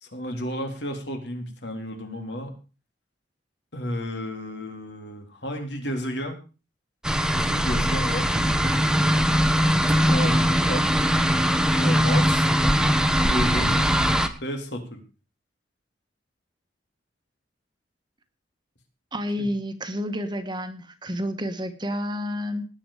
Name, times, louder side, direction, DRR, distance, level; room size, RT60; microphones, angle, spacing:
voice 1, 0.0-2.5 3.7-6.4 7.3-8.9 10.1-10.9 11.8-12.5 13.2-14.1 14.4-15.0 19.4-19.5, equal, 70° left, 4 dB, 3.6 m, -32 dB
sound 1, 7.0-14.3, equal, 5° right, 1.1 m, -21 dB
voice 2, 19.1-22.7, equal, 25° right, 9 dB, 1.4 m, -30 dB
19.0 x 8.1 x 5.0 m, 0.34 s
head